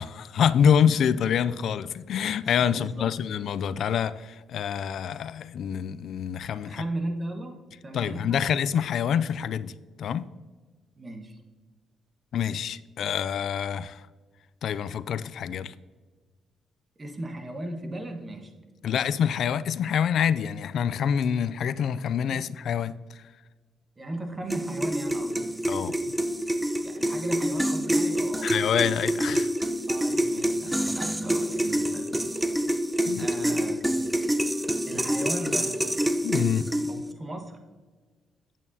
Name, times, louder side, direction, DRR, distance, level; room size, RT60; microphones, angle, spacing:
voice 1, 0.0-6.8 7.9-9.7 10.0-10.3 12.3-14.0 14.6-15.7 18.8-23.2 25.7-26.0 28.4-29.5 33.1-33.3 36.2-36.7, left 8 dB, 70° left, 0.3 m, -26 dB
voice 2, 2.6-3.1 6.6-8.4 10.9-11.4 17.0-18.5 18.9-19.0 22.3-22.4 24.0-25.5 26.8-28.7 29.9-32.4 33.2-34.1 34.9-35.8 36.9-37.6, right 1 dB, 25° right, 1.4 m, -37 dB
sound 1, 24.5-37.1, right 1 dB, 5° right, 0.5 m, -27 dB
8.9 x 8.3 x 2.8 m
cardioid pair, 90°, 0 cm